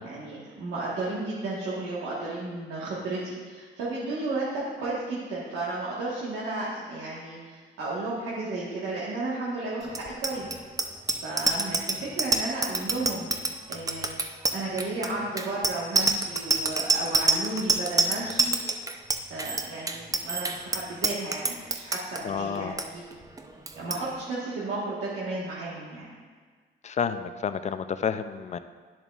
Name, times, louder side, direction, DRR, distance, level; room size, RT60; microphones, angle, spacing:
voice 1, 0.0-10.5 11.2-13.3 13.7-14.1 14.5-18.6 19.3-23.0 23.7-26.1, right 2 dB, 80° right, -8 dB, 1.5 m, -33 dB
Bicycle bell, 9.9-22.2 22.6-22.8 23.1-23.4 23.7-24.0, right 3 dB, 15° right, 0.5 m, -26 dB
voice 2, 22.2-22.7 26.8-28.6, left 7 dB, 35° left, 11 dB, 0.4 m, -30 dB
10.5 x 7.0 x 2.4 m, 1.5 s
cardioid pair, 90°, 20 cm